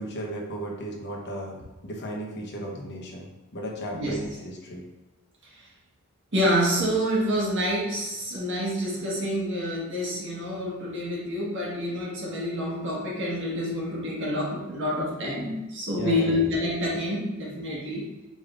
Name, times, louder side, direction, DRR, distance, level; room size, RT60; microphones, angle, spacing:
voice 1, 0.0-1.6 1.8-4.8 15.9-16.5, equal, 50° left, -2 dB, 0.9 m, -35 dB
voice 2, 6.3-18.0, equal, 60° right, -5 dB, 1.4 m, -27 dB
5.1 x 3.4 x 2.5 m, 1.1 s
head